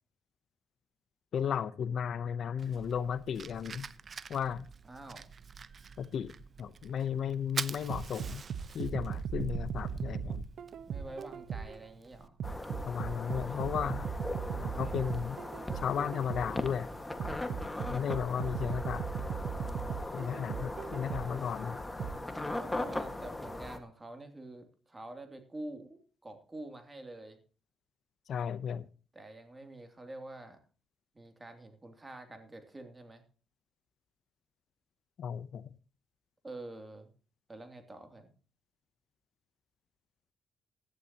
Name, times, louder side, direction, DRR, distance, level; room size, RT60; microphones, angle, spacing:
voice 1, 1.3-3.9 4.3-4.7 6.0-6.3 6.6-8.4 8.7-10.5 12.8-14.1 14.6-15.4 15.7-16.9 17.9-19.0 20.1-21.8 28.3-28.9 35.2-35.7, left 8 dB, 60° left, 0.8 m, -34 dB
Fire, 2.6-12.3, right 5 dB, 40° right, 0.7 m, -45 dB
voice 2, 4.8-5.3 10.9-12.4 14.6-15.1 21.3-21.5 22.6-27.4 29.1-30.6 31.1-33.2 36.4-37.1 37.5-38.3, right 2 dB, 20° right, 2.8 m, -47 dB
sound 1, 7.9-11.9 12.4-16.6 17.2-21.4 22.0-22.1, right 7 dB, 65° right, 1.0 m, -38 dB
sound 2, 12.4-23.8, left 2 dB, 15° left, 1.7 m, -39 dB
16.5 x 11.5 x 2.9 m
cardioid pair, 90°, 0 cm